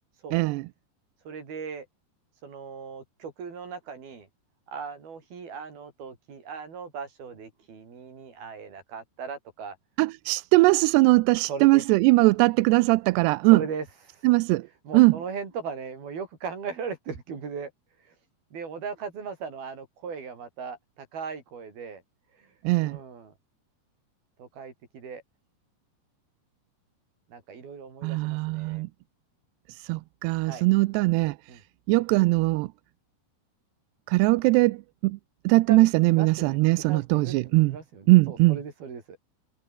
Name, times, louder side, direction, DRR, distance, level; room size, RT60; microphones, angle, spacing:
voice 1, 0.3-0.6 10.0-13.6 14.2-14.7 14.9-15.1 22.6-23.0 28.0-28.9 29.7-31.4 31.9-32.7 34.1-35.2 35.5-37.7 38.1-38.6, right 22 dB, 80° right, 2.6 m, -21 dB
voice 2, 1.3-1.9 2.4-4.3 4.7-9.8 11.5-11.9 13.5-14.3 14.8-17.7 18.0-18.2 18.5-22.0 22.3-22.5 22.8-23.3 24.4-25.2 27.3-28.9 30.5-30.7 31.5-31.6 35.5-35.8 36.1-36.6 36.9-39.2, right 5 dB, 60° right, 6.9 m, -38 dB
omnidirectional pair, 5.0 m